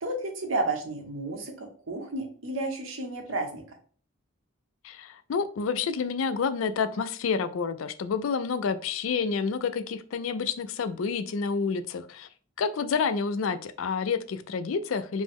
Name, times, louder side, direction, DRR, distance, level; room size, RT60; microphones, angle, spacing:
voice 1, 0.0-3.8, right 2 dB, 85° right, 3 dB, 0.9 m, -32 dB
voice 2, 4.8-12.3 12.6-15.2, left 5 dB, 90° left, 12 dB, 0.4 m, -29 dB
5.1 x 2.0 x 3.5 m, 0.43 s
head